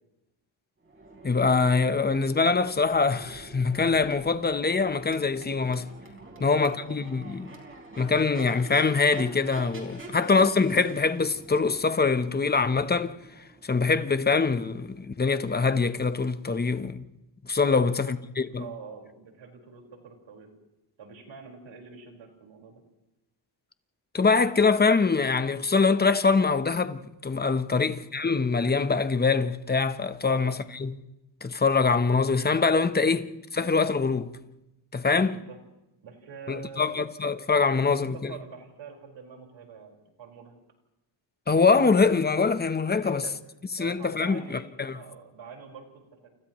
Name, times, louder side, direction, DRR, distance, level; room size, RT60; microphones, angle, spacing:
Crowd / Race car auto racing / Accelerating revving vroom, 0.8-14.7, right 2 dB, 25° right, 4.4 m, -46 dB
voice 1, 1.2-5.9 6.4-7.5 8.0-13.1 13.6-17.0 17.5-18.6 24.1-31.0 31.4-34.4 34.9-35.4 36.5-38.3 41.5-43.2 43.8-45.0, left 4 dB, 20° left, 0.9 m, -24 dB
voice 2, 6.4-7.0 10.0-10.2 17.7-18.2 18.4-20.5 21.0-22.8 27.7-27.9 30.2-30.5 35.1-35.6 36.0-37.0 37.7-40.6 42.9-43.4 43.8-46.3, right 6 dB, 75° right, 5.0 m, -45 dB
29.0 x 29.0 x 3.1 m
cardioid pair, 125°, 45 cm